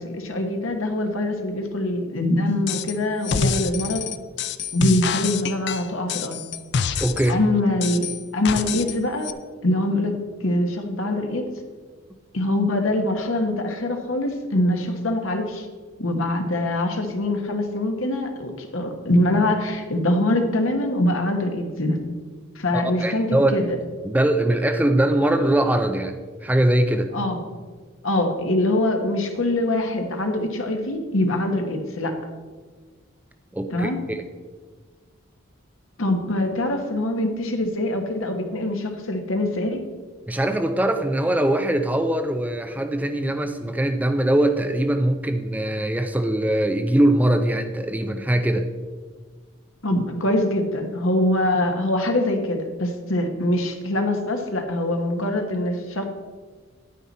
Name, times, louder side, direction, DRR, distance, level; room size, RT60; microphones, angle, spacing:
voice 1, 0.0-4.0 4.7-6.4 7.3-9.3 9.6-10.1 10.4-11.5 12.3-15.7 16.0-22.0 22.5-23.8 27.1-27.4 28.0-32.2 33.7-34.0 36.0-39.9 49.8-56.1, left 1 dB, 75° left, 4 dB, 1.4 m, -23 dB
sound 1, 2.7-3.0 3.2-7.4 7.8-9.0 9.2-9.3, left 6 dB, 55° left, 0.4 m, -26 dB
voice 2, 7.0-7.4 22.7-23.7 24.0-26.2 26.4-27.1 33.5-34.2 40.3-48.7, right 1 dB, 5° right, 7 dB, 0.4 m, -22 dB
10.0 x 9.2 x 4.2 m, 1.5 s
head